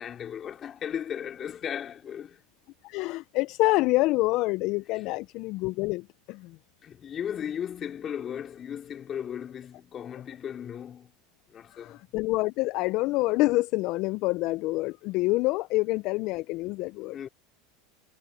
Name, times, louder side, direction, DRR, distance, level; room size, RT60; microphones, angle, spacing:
voice 1, 0.0-2.4 4.9-5.2 6.8-11.1 11.5-12.0 16.6-17.3, left 9 dB, 35° left, 3.8 m, -36 dB
voice 2, 2.8-6.6 11.7-17.2, left 21 dB, 55° left, 0.7 m, -27 dB
hypercardioid pair, 90°, 0 cm